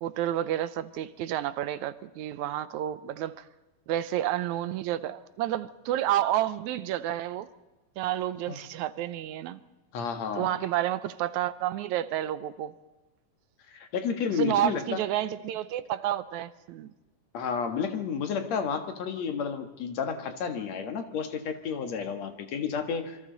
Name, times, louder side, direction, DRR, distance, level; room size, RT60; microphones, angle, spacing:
voice 1, 0.0-3.5 3.9-7.5 8.0-9.6 10.3-12.7 14.3-16.9, right 12 dB, 75° right, 14 dB, 1.9 m, -30 dB
voice 2, 9.9-10.5 13.7-15.0 17.3-23.2, left 6 dB, 60° left, 7 dB, 2.6 m, -31 dB
27.0 x 24.0 x 4.0 m, 1.1 s
omnidirectional pair, 3.8 m